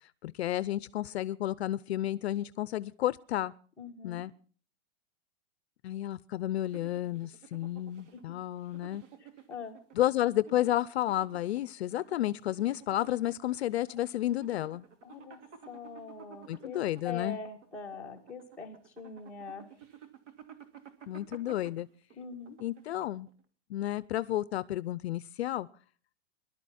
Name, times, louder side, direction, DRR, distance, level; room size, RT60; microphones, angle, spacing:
voice 1, 0.2-3.5 4.0-4.3 5.8-9.0 9.9-14.9 16.5-17.4 21.1-21.9 22.6-23.3 23.7-25.7, left 13 dB, 65° left, 0.6 m, -31 dB
voice 2, 3.8-4.2 8.1-8.2 9.2-9.8 15.0-15.4 15.7-19.7 22.2-22.6, left 5 dB, 5° left, 2.2 m, -43 dB
sound 1, 6.6-23.4, right 9 dB, 90° right, 2.7 m, -54 dB
21.0 x 12.0 x 4.2 m
supercardioid pair, 175°, 35 cm